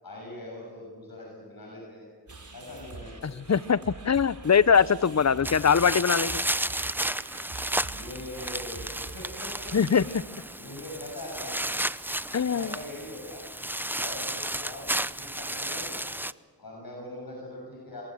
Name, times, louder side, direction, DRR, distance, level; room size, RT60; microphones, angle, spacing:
voice 1, 0.0-2.1 2.5-3.4 7.8-10.0 10.6-11.6 12.3-13.4 14.0-16.0 16.6-18.0, left 1 dB, 60° left, -2 dB, 6.7 m, -42 dB
sound 1, 2.3-10.2, right 3 dB, 45° right, 3.9 m, -45 dB
voice 2, 3.5-3.8 4.1-6.4 9.7-10.0 12.3-12.7, left 6 dB, 40° left, 19 dB, 0.7 m, -22 dB
sound 2, 5.4-16.3, right 1 dB, 5° right, 0.6 m, -33 dB
23.5 x 22.5 x 7.7 m, 1.5 s
cardioid pair, 45°, 40 cm